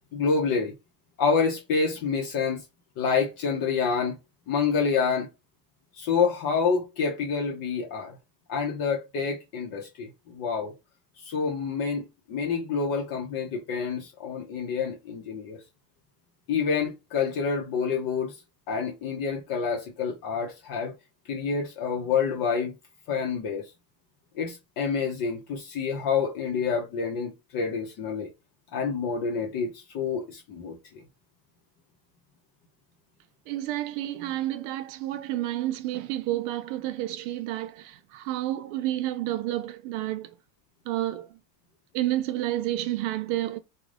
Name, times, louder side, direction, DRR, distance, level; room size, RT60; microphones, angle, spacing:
voice 1, 0.1-0.7 1.2-2.6 3.0-4.2 4.5-5.3 6.0-8.2 8.5-10.7 11.2-15.6 16.5-18.3 18.7-20.9 21.3-22.7 23.1-23.7 24.4-28.3 28.7-30.8, left 5 dB, 45° left, 0.7 m, -28 dB
voice 2, 33.5-40.4 40.9-41.4 41.9-43.6, right 14 dB, 55° right, 0.5 m, -30 dB
2.5 x 2.3 x 3.2 m
cardioid pair, 150°, 49 cm